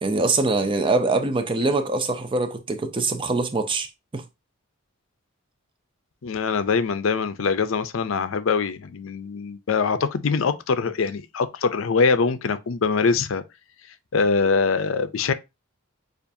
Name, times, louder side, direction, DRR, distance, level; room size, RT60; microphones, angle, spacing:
voice 1, 0.0-4.2, right 3 dB, 25° right, 0.5 m, -23 dB
voice 2, 6.2-13.4 14.1-15.3, left 5 dB, 70° left, 0.5 m, -23 dB
6.9 x 2.5 x 2.7 m
head